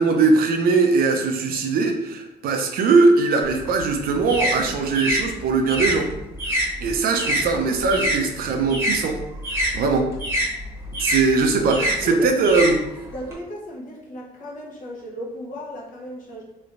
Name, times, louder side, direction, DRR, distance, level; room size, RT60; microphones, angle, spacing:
voice 1, 0.0-6.1 6.5-9.2 9.5-10.1 11.0-12.8, right 4 dB, 60° right, 4 dB, 0.6 m, -20 dB
sound 1, 3.4-8.2 8.5-13.3, equal, 15° right, 1.0 m, -26 dB
voice 2, 12.0-12.7 13.1-16.4, equal, 50° left, -3 dB, 1.0 m, -35 dB
3.2 x 3.1 x 2.5 m, 0.93 s
cardioid pair, 110°, 17 cm